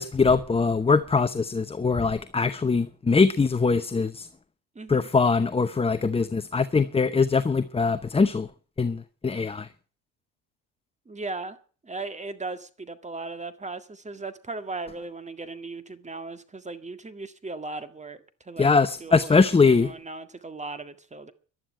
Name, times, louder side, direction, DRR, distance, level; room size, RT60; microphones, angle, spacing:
voice 1, 0.0-4.3 4.9-8.5 8.8-9.7 18.6-19.9, left 4 dB, 15° left, 0.8 m, -22 dB
voice 2, 4.8-5.1 11.1-11.6 11.8-18.7 19.0-21.3, right 3 dB, 20° right, 1.9 m, -37 dB
12.0 x 11.0 x 8.9 m
supercardioid pair, 80°, 35 cm